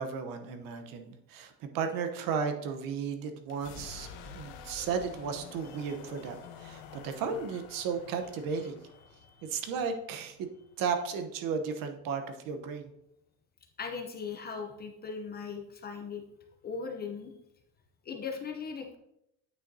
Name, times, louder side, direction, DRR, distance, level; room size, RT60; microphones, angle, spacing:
voice 1, 0.0-8.8 9.4-10.5 10.8-12.9, right 6 dB, 55° right, 7 dB, 1.0 m, -34 dB
sound 1, 3.4-11.2, left 6 dB, 85° left, 1.1 m, -49 dB
voice 2, 9.2-9.6 13.8-16.2 16.6-17.3 18.0-19.0, left 5 dB, 25° left, 3 dB, 0.7 m, -39 dB
9.1 x 6.3 x 2.7 m, 0.81 s
cardioid pair, 145°, 41 cm